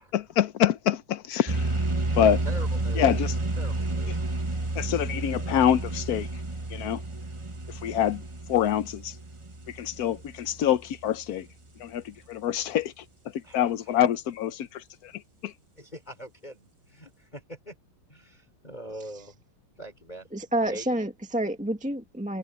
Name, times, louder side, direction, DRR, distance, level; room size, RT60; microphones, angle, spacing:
voice 1, 0.1-1.8 2.2-2.4 3.0-3.3 4.8-6.3 6.7-7.0 7.8-8.2 8.5-9.1 9.7-11.4 11.8-12.9 13.5-15.1 15.4-15.5, left 10 dB, 65° left, 0.9 m, -25 dB
sound 1, 1.5-11.0, right 2 dB, 20° right, 0.9 m, -31 dB
voice 2, 2.4-3.1 3.6-4.2 13.4-13.9 15.8-17.7 18.1-19.4 19.8-20.3 20.7-20.9, right 1 dB, 20° left, 4.5 m, -43 dB
voice 3, 20.3-22.4, right 1 dB, 5° right, 1.5 m, -29 dB
omnidirectional pair, 2.3 m